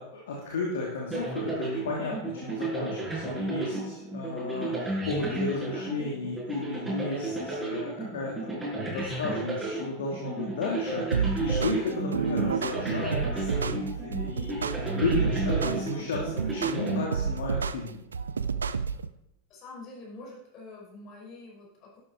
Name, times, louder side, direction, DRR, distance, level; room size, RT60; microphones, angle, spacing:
voice 1, 0.0-18.0, left 3 dB, 60° left, -3 dB, 2.7 m, -34 dB
sound 1, 1.1-17.7, right 2 dB, 10° right, 5.7 m, -33 dB
Nice groove, 11.1-19.1, right 6 dB, 70° right, 0.5 m, -30 dB
voice 2, 19.5-22.0, left 2 dB, 35° left, -2 dB, 5.8 m, -46 dB
12.0 x 11.5 x 4.5 m, 0.83 s
figure-of-eight pair, 90°, 0 cm